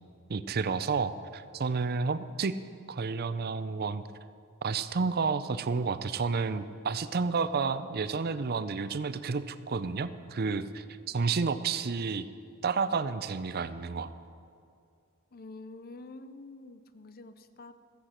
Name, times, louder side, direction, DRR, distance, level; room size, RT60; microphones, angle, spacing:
voice 1, 0.3-2.5 2.9-4.0 4.6-12.3 12.6-14.1, right 4 dB, 45° right, 13 dB, 0.5 m, -30 dB
voice 2, 15.3-17.7, left 2 dB, 45° left, 11 dB, 0.6 m, -47 dB
14.0 x 8.2 x 7.4 m, 2.4 s
head